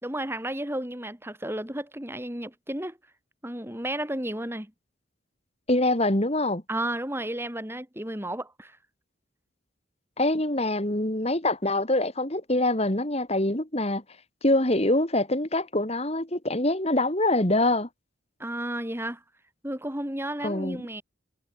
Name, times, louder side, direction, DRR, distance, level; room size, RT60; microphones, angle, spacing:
voice 1, 0.0-3.0 3.4-4.7 6.7-8.8 18.4-19.2 19.6-21.0, right 1 dB, 10° right, 2.4 m, -32 dB
voice 2, 5.7-6.6 10.2-14.0 14.4-17.9 20.4-20.8, left 1 dB, 30° left, 2.7 m, -24 dB
head